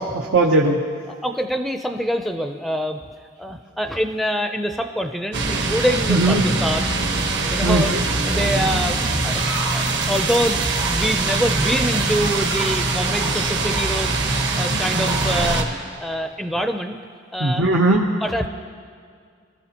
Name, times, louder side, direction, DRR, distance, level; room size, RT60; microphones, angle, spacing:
voice 1, 0.1-0.8 6.1-6.4 7.6-8.0 17.4-18.1, right 2 dB, 85° right, -2 dB, 0.9 m, -18 dB
voice 2, 1.1-3.0 3.4-6.9 7.5-7.9 8.3-9.0 9.2-9.4 9.7-14.3 14.6-17.0 17.3-17.6 18.2-18.5, equal, ahead, 5 dB, 0.5 m, -25 dB
sound 1, 5.3-15.6, right 3 dB, 65° right, 1.4 m, -22 dB
23.0 x 14.0 x 2.9 m, 2.1 s
head